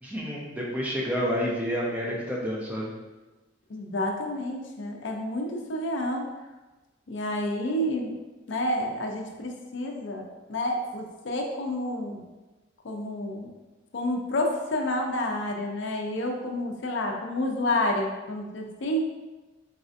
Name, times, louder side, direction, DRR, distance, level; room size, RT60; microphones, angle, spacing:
voice 1, 0.0-2.9, equal, 10° right, -4 dB, 0.5 m, -29 dB
voice 2, 3.7-6.3 7.1-8.2 8.5-12.3 12.8-13.5 13.9-19.1, left 1 dB, 65° left, 2 dB, 0.5 m, -29 dB
4.1 x 2.5 x 2.5 m, 1.2 s
head